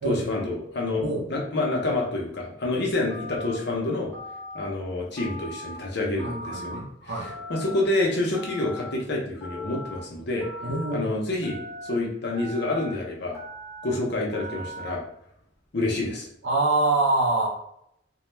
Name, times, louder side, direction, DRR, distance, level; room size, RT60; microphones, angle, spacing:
voice 1, 0.0-1.0 1.3-4.1 4.5-6.8 7.5-10.5 10.9-13.4 13.8-15.0 15.7-16.3, left 2 dB, 60° left, -2 dB, 0.7 m, -27 dB
Telephone, 3.1-3.6 4.1-4.7 5.2-5.8 6.2-6.8 7.2-7.8 8.3-8.9 9.4-10.0 10.4-10.9 11.4-11.9 12.3-12.9 13.3-13.9 14.3-14.9, equal, 15° left, 1.0 m, -39 dB
voice 2, 6.2-7.3 10.6-11.1 16.4-17.5, right 2 dB, 70° right, -2 dB, 0.7 m, -25 dB
2.3 x 2.2 x 3.1 m, 0.74 s
head